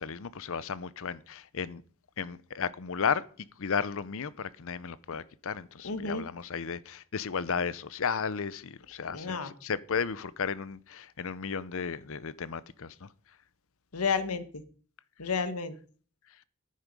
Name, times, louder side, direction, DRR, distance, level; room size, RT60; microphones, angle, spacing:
voice 1, 0.0-1.8 2.2-13.1, left 6 dB, 65° left, 0.7 m, -34 dB
voice 2, 5.8-6.2 9.1-9.5 13.9-14.6 15.2-15.7, left 5 dB, 80° left, 1.3 m, -31 dB
11.0 x 9.6 x 5.3 m
head